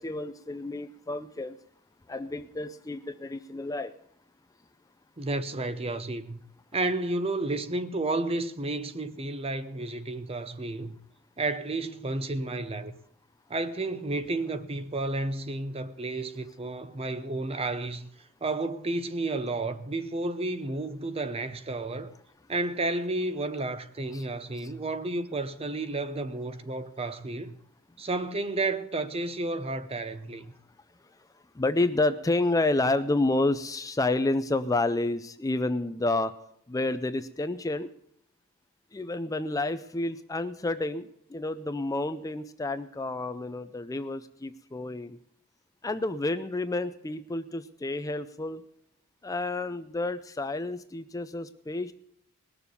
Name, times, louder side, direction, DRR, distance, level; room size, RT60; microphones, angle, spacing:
voice 1, 0.0-1.6 2.1-3.9 24.1-24.3 24.6-24.7 31.6-36.3 36.7-37.9 38.9-45.2 45.8-48.6 49.2-51.9, left 2 dB, 15° left, 0.4 m, -29 dB
voice 2, 5.2-6.4 6.7-11.0 11.4-12.9 13.5-18.1 18.4-22.1 22.5-27.6 28.0-30.5, right 2 dB, 30° right, 0.7 m, -31 dB
19.5 x 6.9 x 6.9 m
head